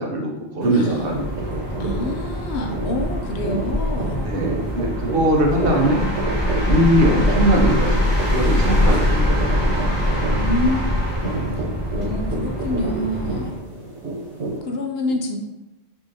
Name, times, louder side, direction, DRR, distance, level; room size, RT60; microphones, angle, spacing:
voice 1, 0.0-1.7 4.2-6.0 6.5-9.6 12.1-12.2, right 1 dB, 60° right, 0 dB, 0.9 m, -21 dB
sound 1, 0.6-14.6, right 2 dB, 75° right, 1.4 m, -30 dB
voice 2, 0.7-1.1 1.8-4.4 10.4-10.8 11.2-11.5 11.9-13.6 14.6-15.4, left 1 dB, 65° left, 2 dB, 0.8 m, -27 dB
sound 2, 0.9-13.6, left 1 dB, 25° left, 1.2 m, -23 dB
6.1 x 2.8 x 2.7 m, 1.0 s
omnidirectional pair, 1.2 m